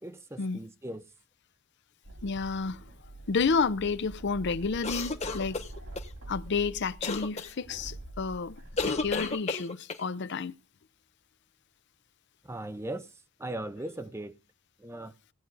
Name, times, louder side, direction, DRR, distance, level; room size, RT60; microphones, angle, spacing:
voice 1, 0.0-1.1 12.4-13.1 13.4-14.4 14.8-15.1, right 1 dB, 15° right, 0.6 m, -38 dB
sound 1, 2.0-9.3, right 2 dB, 85° right, 3.4 m, -45 dB
voice 2, 2.2-2.9 3.3-5.6 6.3-10.5, left 5 dB, 55° left, 0.6 m, -30 dB
sound 2, 4.8-6.1 7.0-7.5 8.8-10.1, left 3 dB, 30° left, 1.2 m, -32 dB
17.0 x 9.1 x 3.9 m
head